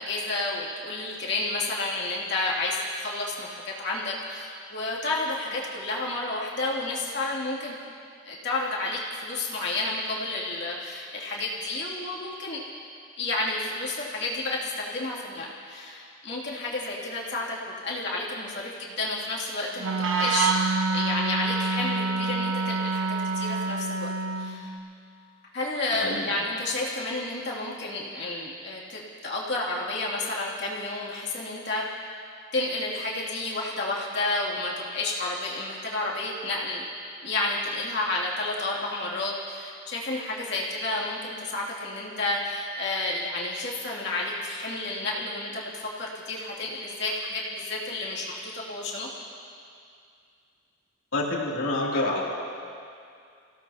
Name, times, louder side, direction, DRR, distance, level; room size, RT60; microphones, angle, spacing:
voice 1, 0.0-7.7 8.3-12.6 13.2-24.7 25.5-31.8 32.5-36.8 37.2-49.1, left 2 dB, 60° left, -5 dB, 2.7 m, -31 dB
Wind instrument woodwind instrument, 19.8-24.7, right 3 dB, 85° right, 1.2 m, -27 dB
voice 2, 25.9-26.3 51.1-52.2, left 2 dB, 85° left, -4 dB, 2.9 m, -27 dB
29.0 x 17.0 x 2.9 m, 2.4 s
head